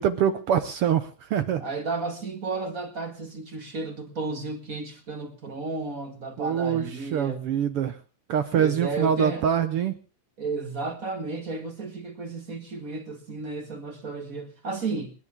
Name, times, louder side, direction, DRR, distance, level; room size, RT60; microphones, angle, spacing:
voice 1, 0.0-1.7 6.4-8.0 8.3-10.0, right 8 dB, 65° right, 1.5 m, -25 dB
voice 2, 1.6-7.4 8.5-9.5 10.4-15.1, right 3 dB, 30° right, 2.0 m, -33 dB
28.0 x 10.5 x 3.6 m
omnidirectional pair, 3.4 m